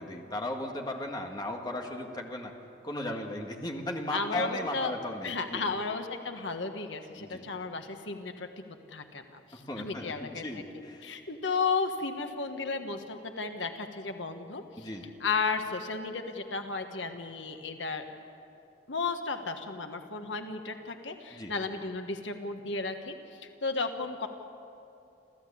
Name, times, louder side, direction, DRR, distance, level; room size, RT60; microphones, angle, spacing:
voice 1, 0.0-2.5 2.8-5.6 7.2-7.4 9.7-11.1 14.8-15.1 21.3-21.5, left 1 dB, 20° left, 1 dB, 2.0 m, -36 dB
voice 2, 4.1-4.9 5.2-8.5 8.9-10.4 11.0-14.9 15.2-18.1 18.9-23.1 23.4-24.3, left 4 dB, 80° left, 6 dB, 1.4 m, -34 dB
27.5 x 15.0 x 8.5 m, 2.7 s
head